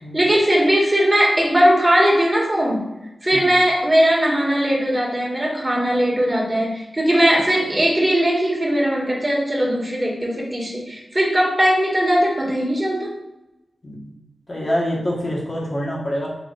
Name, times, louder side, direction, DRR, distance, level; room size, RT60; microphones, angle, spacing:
voice 1, 0.1-2.8 3.2-13.1, equal, 25° right, -3 dB, 1.4 m, -19 dB
voice 2, 14.5-16.3, equal, 45° left, -4 dB, 1.3 m, -25 dB
4.1 x 3.4 x 2.5 m, 0.98 s
cardioid pair, 45°, 0 cm